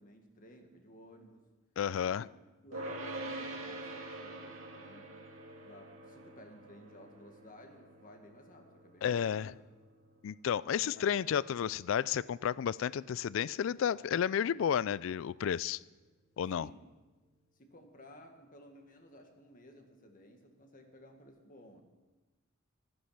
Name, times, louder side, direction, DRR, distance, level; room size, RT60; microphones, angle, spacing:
voice 1, 0.0-1.4 1.9-5.1 5.6-9.5 10.8-11.2 16.5-16.8 17.6-21.8, left 1 dB, 45° left, 4 dB, 1.7 m, -56 dB
voice 2, 1.8-2.3 9.0-9.5 10.2-15.8 16.4-16.7, left 8 dB, 70° left, 20 dB, 0.3 m, -32 dB
sound 1, 2.7-14.0, right 2 dB, 85° right, 2.0 m, -47 dB
15.0 x 9.7 x 5.8 m, 1.2 s
head